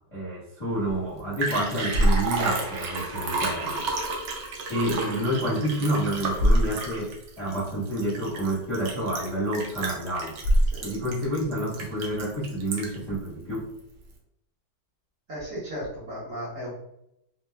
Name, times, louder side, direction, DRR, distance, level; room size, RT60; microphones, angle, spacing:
voice 1, 0.1-3.9 4.7-10.3 10.8-13.7, right 1 dB, 25° left, -10 dB, 0.7 m, -29 dB
Liquid, 0.9-1.0 1.2-13.1 13.5-13.6, right 1 dB, 85° right, 1.3 m, -27 dB
voice 2, 15.3-16.7, equal, 50° right, -9 dB, 1.9 m, -35 dB
3.7 x 2.4 x 2.2 m, 0.79 s
omnidirectional pair, 1.9 m